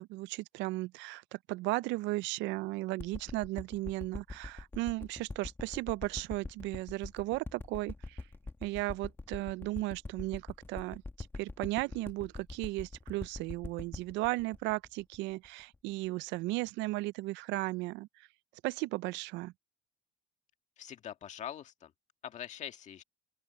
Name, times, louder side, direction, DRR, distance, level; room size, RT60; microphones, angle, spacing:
voice 1, 0.0-8.2 8.6-18.3 18.6-19.5, right 20 dB, 70° right, 0.4 m, -35 dB
sound 1, 3.0-15.8 16.3-16.4, left 3 dB, 10° left, 1.2 m, -43 dB
voice 2, 20.8-21.9 22.2-23.0, left 9 dB, 40° left, 1.8 m, -43 dB
open air
cardioid pair, 160°, 19 cm